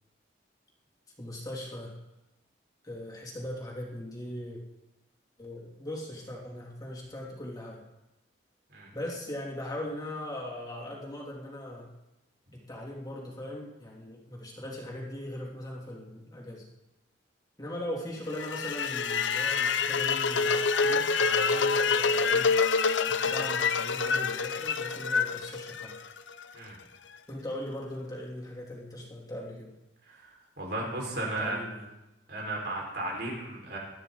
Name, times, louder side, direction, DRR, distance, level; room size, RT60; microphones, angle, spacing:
voice 1, 1.2-1.9 2.8-4.6 5.4-7.8 8.9-11.9 12.5-16.7 17.6-22.5 23.1-25.9 27.3-29.7 31.1-31.9, left 1 dB, 20° left, -3 dB, 3.1 m, -39 dB
sound 1, 18.3-26.4, left 5 dB, 90° left, 0.8 m, -27 dB
voice 2, 30.6-31.6 32.3-33.8, right 2 dB, 60° right, -2 dB, 5.1 m, -34 dB
21.0 x 13.0 x 4.0 m, 0.94 s
head